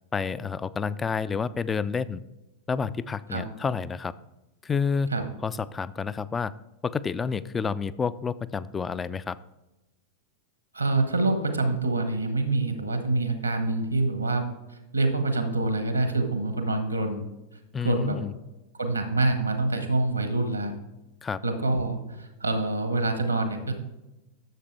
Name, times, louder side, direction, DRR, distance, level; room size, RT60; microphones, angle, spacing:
voice 1, 0.1-2.2 2.7-4.1 4.6-5.1 5.4-6.5 6.8-9.4 17.7-18.3 21.2-21.4, left 5 dB, 15° left, 17 dB, 0.3 m, -29 dB
voice 2, 10.7-14.5 14.9-17.2 17.8-18.2 18.8-20.7 21.4-23.7, right 2 dB, 85° right, 7 dB, 1.3 m, -26 dB
11.0 x 7.1 x 3.4 m, 0.99 s
figure-of-eight pair, 90°, 0 cm